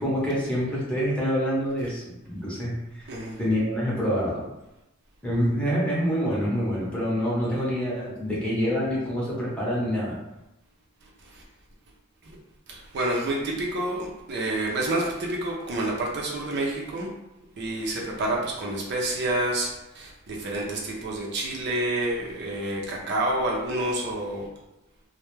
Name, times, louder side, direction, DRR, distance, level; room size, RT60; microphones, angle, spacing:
voice 1, 0.0-3.1 3.4-4.4 5.2-10.1, equal, 5° left, -7 dB, 0.7 m, -26 dB
voice 2, 3.1-3.4 11.2-11.4 12.2-12.3 12.7-17.1 17.6-24.5, right 1 dB, 55° right, -2 dB, 0.5 m, -28 dB
2.2 x 2.1 x 3.0 m, 0.93 s
head